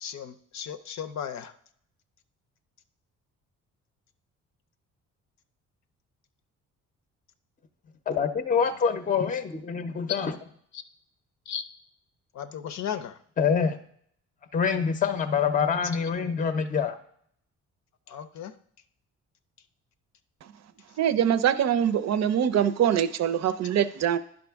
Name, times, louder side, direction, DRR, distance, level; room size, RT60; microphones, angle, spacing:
voice 1, 0.0-1.5 11.5-11.6 12.4-13.1 18.1-18.5, left 8 dB, 65° left, 11 dB, 0.6 m, -35 dB
voice 2, 8.1-10.4 13.4-13.8 14.5-17.0, left 6 dB, 25° left, 10 dB, 0.6 m, -25 dB
voice 3, 21.0-24.2, right 9 dB, 60° right, 14 dB, 0.6 m, -23 dB
10.5 x 5.2 x 3.5 m, 0.66 s
cardioid pair, 90°, 30 cm